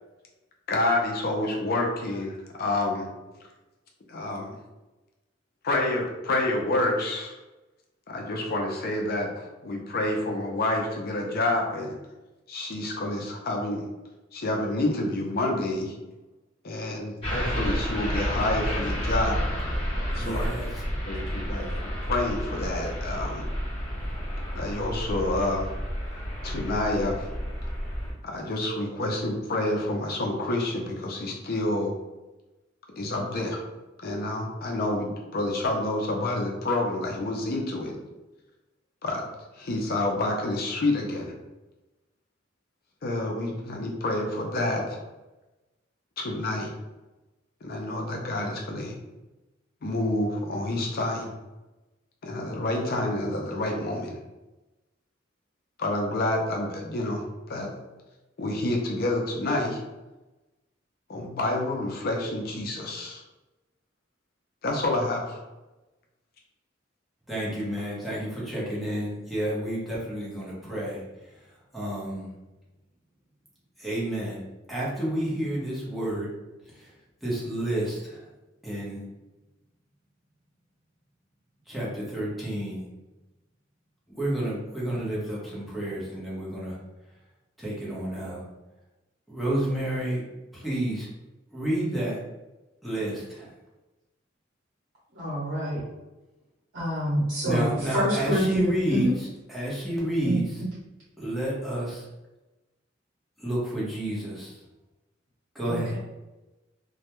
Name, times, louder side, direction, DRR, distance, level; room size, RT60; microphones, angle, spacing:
voice 1, 0.7-3.1 4.1-4.6 5.6-7.4 8.1-11.9 12.5-13.8 14.3-15.9 16.6-19.4 20.1-20.5 21.1-23.4 24.6-25.7 26.4-27.3 28.2-31.9 33.0-33.6 34.0-38.0 39.0-39.2 39.6-41.3 43.0-45.0 46.2-46.7 47.6-49.0 49.8-51.3 52.2-54.2 55.8-57.7 58.4-59.8 61.1-63.2 64.6-65.4, left 2 dB, 50° left, 0 dB, 0.5 m, -28 dB
sound 1, 17.2-28.1, equal, 30° left, 0.9 m, -30 dB
voice 2, 20.2-20.8 67.3-72.3 73.8-74.4 74.7-76.3 76.7-76.9 77.2-78.3 78.6-79.1 81.7-82.8 84.1-86.8 87.6-88.4 89.3-90.2 90.5-91.1 91.5-92.2 92.8-93.5 97.4-100.6 101.2-102.1 103.4-104.6 105.5-105.9, right 1 dB, ahead, -7 dB, 0.8 m, -30 dB
voice 3, 95.1-95.8 96.7-97.7 97.9-99.1 100.2-100.4 105.7-106.0, equal, 85° right, -7 dB, 0.8 m, -27 dB
2.2 x 2.1 x 2.9 m, 1.1 s
head